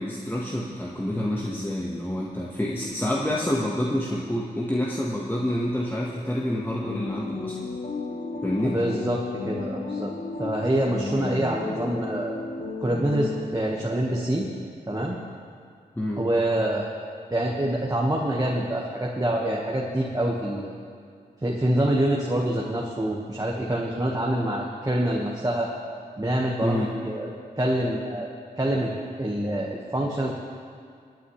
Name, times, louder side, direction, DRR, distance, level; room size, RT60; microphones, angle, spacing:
voice 1, 0.0-7.6 8.4-8.8 11.1-11.3 16.0-16.2 26.6-26.9, left 1 dB, 10° left, -4 dB, 1.5 m, -28 dB
sound 1, 6.7-13.9, left 3 dB, 50° left, 1.5 m, -33 dB
voice 2, 8.6-10.1 10.4-12.4 12.8-14.5 14.9-15.2 16.2-16.9 17.3-20.8 21.4-25.7 26.2-27.3 27.6-28.3 28.6-28.9 29.2-30.3, right 1 dB, 20° right, -3 dB, 1.6 m, -26 dB
24.5 x 8.6 x 3.3 m, 2.2 s
supercardioid pair, 40°, 18 cm